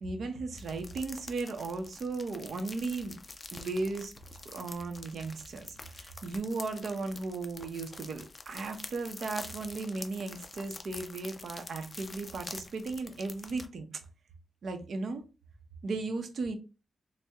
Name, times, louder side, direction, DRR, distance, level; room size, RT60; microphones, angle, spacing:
voice 1, 0.0-3.2 3.5-4.1 4.4-13.9 14.6-15.2 15.8-16.6, right 3 dB, 60° right, 7 dB, 0.6 m, -36 dB
sound 1, 0.6-13.7, left 3 dB, 25° left, 0.4 m, -47 dB
4.2 x 2.1 x 3.5 m, 0.32 s
wide cardioid pair, 150°, 0 cm